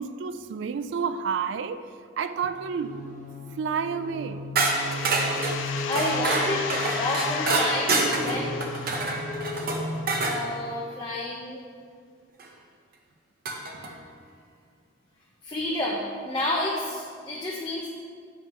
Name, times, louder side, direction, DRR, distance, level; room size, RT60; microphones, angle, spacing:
voice 1, 0.0-3.0 3.5-4.5, right 6 dB, 65° right, 0.3 m, -30 dB
sound 1, 2.6-10.5, left 2 dB, 45° left, 1.3 m, -36 dB
sound 2, 4.6-10.1, left 8 dB, 75° left, 0.3 m, -35 dB
sound 3, 4.6-10.4 12.4-12.5 13.5-13.9, right 3 dB, 50° right, 0.7 m, -27 dB
voice 2, 5.9-8.5 10.2-11.6 15.4-17.9, left 1 dB, 25° left, 0.5 m, -30 dB
7.5 x 3.1 x 5.5 m
head